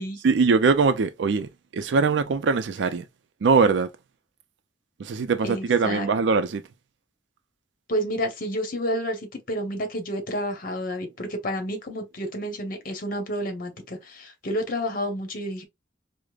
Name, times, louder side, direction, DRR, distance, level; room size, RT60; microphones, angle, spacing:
voice 1, 0.2-3.0 3.4-3.9 5.0-6.6, right 4 dB, 80° right, 0.4 m, -22 dB
voice 2, 5.4-6.1 7.9-15.6, equal, 50° left, 0.9 m, -30 dB
4.9 x 2.0 x 2.3 m
head